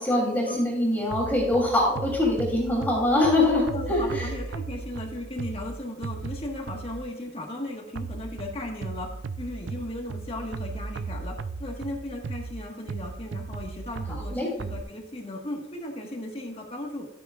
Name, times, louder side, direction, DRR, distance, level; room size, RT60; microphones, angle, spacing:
voice 1, 0.0-4.3 14.3-14.5, left 1 dB, 10° left, -3 dB, 3.0 m, -23 dB
sound 1, 1.1-7.2 8.0-14.8, right 4 dB, 65° right, 0.5 m, -36 dB
voice 2, 3.7-9.1 9.4-17.1, left 1 dB, 30° left, 0 dB, 1.4 m, -36 dB
12.5 x 9.1 x 2.4 m, 0.88 s
head